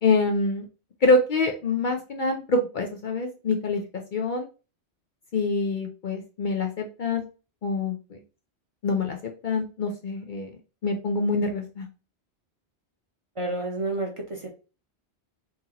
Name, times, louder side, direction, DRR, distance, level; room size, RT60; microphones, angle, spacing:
voice 1, 0.0-0.6 1.0-3.8 4.1-4.5 5.3-7.2 7.6-8.2 8.8-10.5 10.8-11.9, left 3 dB, 55° left, 2 dB, 0.6 m, -25 dB
voice 2, 13.4-14.5, right 2 dB, 35° right, 1 dB, 0.7 m, -30 dB
2.8 x 2.8 x 3.8 m, 0.33 s
omnidirectional pair, 1.1 m